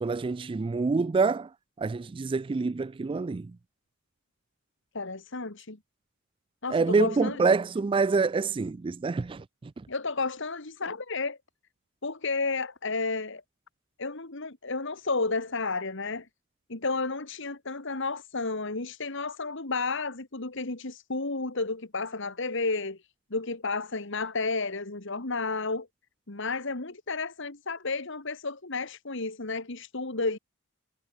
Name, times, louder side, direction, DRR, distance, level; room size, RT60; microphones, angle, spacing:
voice 1, 0.0-1.5 1.8-3.5 6.7-9.7, right 4 dB, 25° right, 0.3 m, -26 dB
voice 2, 4.9-5.8 6.6-7.4 9.9-11.4 12.0-13.4 14.0-16.3 16.7-25.9 26.3-30.4, left 3 dB, 65° left, 2.2 m, -32 dB
head